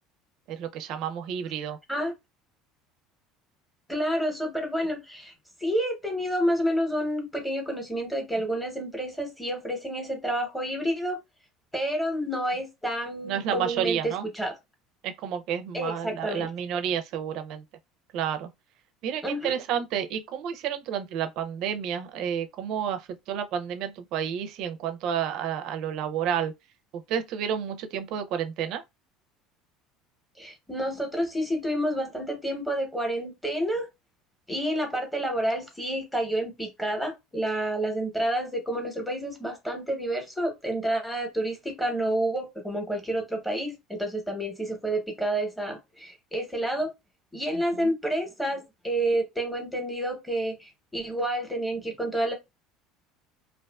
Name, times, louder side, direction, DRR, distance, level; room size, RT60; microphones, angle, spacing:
voice 1, 0.5-1.8 13.2-14.3 15.0-17.6 18.1-18.5 19.0-26.5 26.9-28.8 47.5-47.9, right 8 dB, 60° right, 0.4 m, -30 dB
voice 2, 3.9-5.3 5.6-11.2 11.7-14.5 15.7-16.5 19.2-19.5 30.4-33.9 34.5-46.9 47.3-52.3, right 1 dB, 5° left, 0.8 m, -29 dB
2.4 x 2.3 x 2.2 m
cardioid pair, 130°, 0 cm